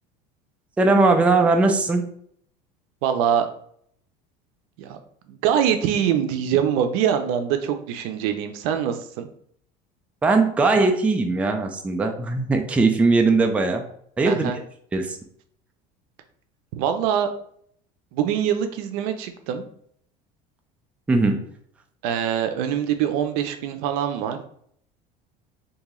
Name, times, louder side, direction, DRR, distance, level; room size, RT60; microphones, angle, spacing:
voice 1, 0.8-2.0 10.2-13.8 14.2-14.5 14.9-15.2 21.1-21.4, right 3 dB, 5° right, 4 dB, 0.3 m, -19 dB
voice 2, 3.0-3.5 4.8-5.0 5.3-9.3 14.2-14.6 16.8-17.3 18.1-19.6 22.0-24.4, right 9 dB, 75° right, 7 dB, 0.5 m, -24 dB
2.9 x 2.7 x 3.6 m, 0.65 s
cardioid pair, 135°, 19 cm